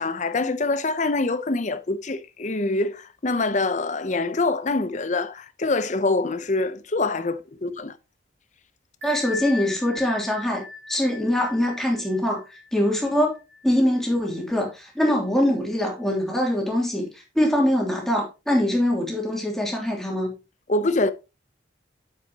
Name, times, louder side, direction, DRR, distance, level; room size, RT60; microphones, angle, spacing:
voice 1, 0.0-8.0 20.7-21.1, left 2 dB, 40° left, 0.7 m, -25 dB
voice 2, 9.0-10.6 10.9-12.4 12.7-13.4 13.6-17.1 17.3-20.3, left 1 dB, ahead, 2.8 m, -23 dB
Bell, 9.0-14.4, left 4 dB, 65° right, 2.3 m, -39 dB
9.3 x 7.6 x 2.9 m
head